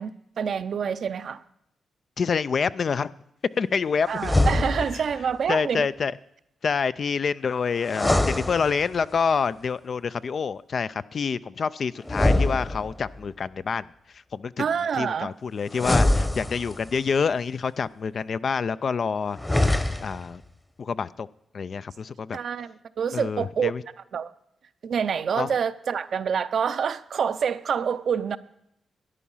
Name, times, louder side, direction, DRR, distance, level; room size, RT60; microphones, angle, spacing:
voice 1, 0.0-1.4 4.1-5.9 14.6-15.3 22.3-23.7 24.1-24.3 24.8-28.4, right 7 dB, 65° right, 0.6 m, -27 dB
voice 2, 2.2-3.1 3.6-4.3 4.9-5.0 5.5-6.1 6.6-13.9 14.3-14.7 15.0-19.4 20.0-20.4 20.8-21.3 21.5-22.4 23.1-23.8 25.4-25.5, left 5 dB, 55° left, 0.4 m, -27 dB
sound 1, 4.2-5.1 7.8-9.2 12.0-13.2 15.7-17.0 19.3-20.3, left 1 dB, 15° left, 1.0 m, -24 dB
13.0 x 10.0 x 5.6 m
cardioid pair, 70°, 0 cm